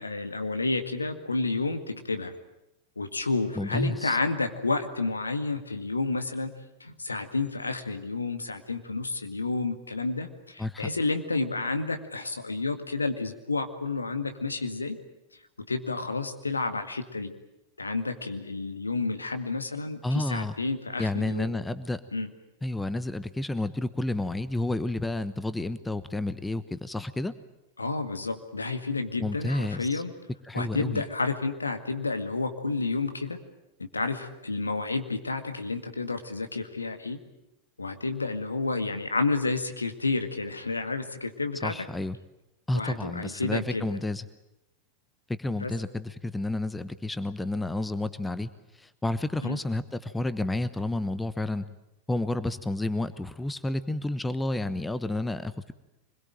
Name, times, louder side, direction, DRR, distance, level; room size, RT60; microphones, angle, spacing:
voice 1, 0.0-2.4 3.0-6.5 6.8-15.0 15.6-17.4 17.8-21.5 22.1-22.3 27.8-30.1 30.5-33.4 33.8-37.2 37.8-41.8 42.7-43.9 45.6-45.7 49.4-49.6, left 3 dB, 80° left, 8 dB, 2.0 m, -30 dB
voice 2, 3.6-4.2 10.6-10.9 20.0-20.6 21.0-22.0 22.6-27.3 29.2-30.0 30.4-31.0 41.6-42.2 42.7-44.3 45.3-48.5 48.8-51.7 52.1-55.7, left 2 dB, 5° left, 14 dB, 1.1 m, -30 dB
25.0 x 21.5 x 9.1 m, 0.90 s
figure-of-eight pair, 90°, 0 cm